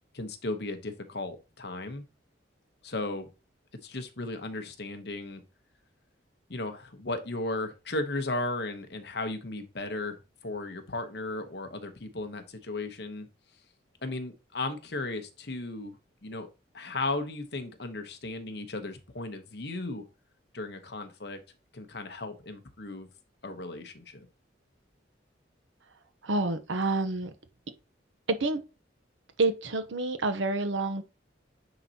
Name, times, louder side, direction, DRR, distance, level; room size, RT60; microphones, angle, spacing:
voice 1, 0.1-2.0 2.8-3.3 3.8-5.4 6.5-13.3 14.0-16.0 16.2-16.5 16.7-20.0 20.5-21.4 21.7-23.1 23.4-24.3, left 2 dB, 60° left, 1.0 m, -35 dB
voice 2, 26.2-27.3 28.4-28.6 29.4-31.0, right 2 dB, 85° right, 0.9 m, -28 dB
9.4 x 4.0 x 2.9 m
head